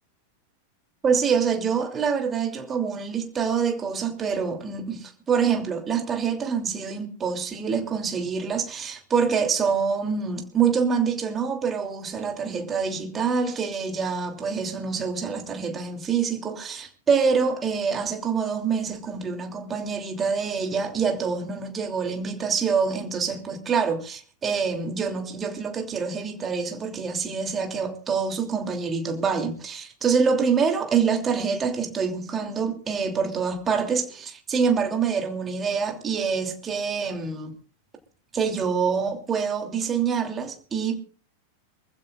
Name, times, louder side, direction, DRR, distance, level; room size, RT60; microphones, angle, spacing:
voice 1, 1.0-37.5 38.3-41.0, right 6 dB, 20° right, 3.0 m, -26 dB
25.5 x 15.5 x 2.5 m
figure-of-eight pair, 90°, 0 cm